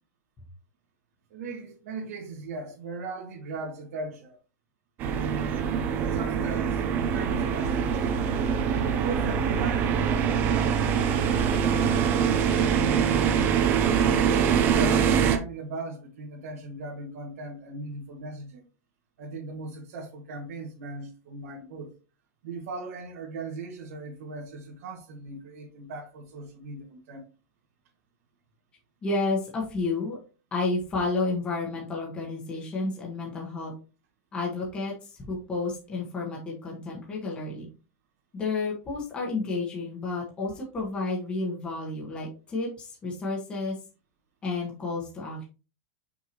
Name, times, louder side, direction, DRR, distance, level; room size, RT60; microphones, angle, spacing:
voice 1, 1.3-4.4 6.0-8.3 9.0-13.1 14.1-18.7 19.2-21.9 22.4-27.3, right 3 dB, 55° right, 1.8 m, -38 dB
sound 1, 5.0-15.4, right 7 dB, 20° right, 0.6 m, -24 dB
voice 2, 29.0-30.2 30.5-33.7 34.3-37.7 38.3-43.7 44.4-45.4, left 3 dB, 10° left, 1.2 m, -31 dB
5.8 x 5.7 x 3.0 m
supercardioid pair, 180°, 9 cm